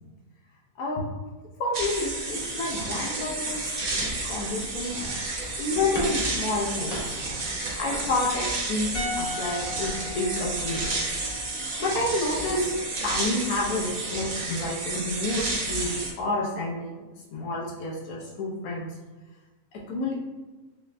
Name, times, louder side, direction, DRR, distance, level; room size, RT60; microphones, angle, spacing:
voice 1, 1.6-5.1 5.6-7.2 7.8-11.2 11.8-12.7 13.0-17.0 17.3-18.9 19.9-20.1, left 2 dB, 80° left, -4 dB, 1.2 m, -29 dB
sound 1, 1.7-16.1, right 2 dB, 65° right, 0.4 m, -31 dB
sound 2, 3.8-11.6, equal, 30° left, 1.0 m, -41 dB
sound 3, 8.9-12.2 12.4-12.6, left 3 dB, 65° left, 1.1 m, -38 dB
5.2 x 2.1 x 2.5 m, 1.2 s
omnidirectional pair, 1.6 m